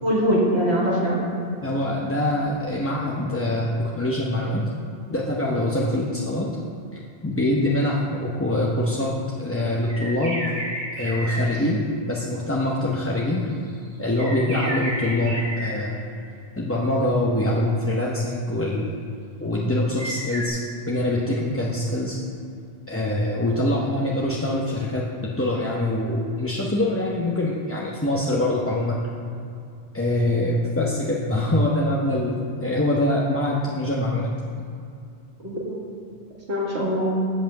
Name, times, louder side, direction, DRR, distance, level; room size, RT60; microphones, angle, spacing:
voice 1, 0.0-1.2 35.4-35.8 36.5-37.2, equal, 85° right, -4 dB, 2.2 m, -22 dB
voice 2, 1.6-4.6 5.1-6.5 7.2-9.1 9.4-10.4 10.9-13.4 14.0-16.0 16.6-18.9 19.4-22.2 22.9-29.0 29.9-34.3, left 1 dB, 15° left, -4 dB, 0.6 m, -24 dB
sound 1, 9.9-11.7 13.5-15.7 20.0-20.5, right 1 dB, 60° right, 1.8 m, -31 dB
7.4 x 5.6 x 7.6 m, 2.5 s
omnidirectional pair, 1.1 m